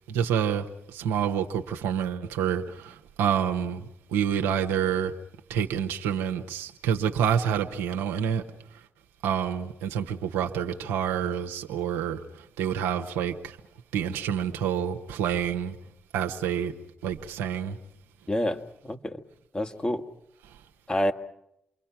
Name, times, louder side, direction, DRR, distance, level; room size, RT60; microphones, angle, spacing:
voice 1, 0.1-5.1 5.5-8.4 9.2-12.2 12.6-13.6 13.9-15.8 16.1-16.7 17.0-17.8, right 8 dB, 90° right, 1.0 m, -28 dB
voice 2, 18.3-19.2 19.5-20.0 20.9-21.1, left 1 dB, 25° left, 2.0 m, -28 dB
29.0 x 23.0 x 5.9 m
hypercardioid pair, 45°, 4 cm